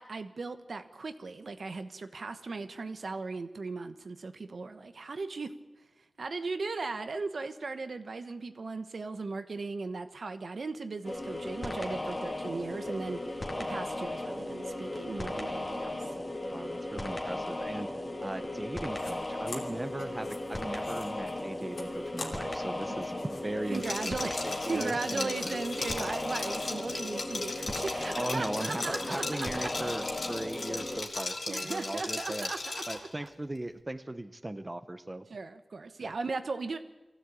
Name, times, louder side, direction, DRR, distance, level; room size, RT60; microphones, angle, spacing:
voice 1, 0.0-16.2 23.7-29.7 31.5-33.3 35.3-36.8, right 3 dB, 65° right, 9 dB, 1.3 m, -37 dB
sound 1, 11.0-31.0, left 1 dB, 25° left, 2.5 m, -36 dB
voice 2, 16.5-17.9 18.2-24.2 24.7-25.6 28.2-32.5 32.9-35.2, right 1 dB, 20° right, 9 dB, 0.9 m, -38 dB
sound 2, 18.9-19.1 19.5-22.7 23.0-26.8 27.1-29.2, left 3 dB, 85° left, 3.0 m, -47 dB
Liquid, 23.7-33.1, left 3 dB, 60° left, 3.1 m, -37 dB
22.5 x 15.5 x 8.6 m, 1.1 s
wide cardioid pair, 105°, 0 cm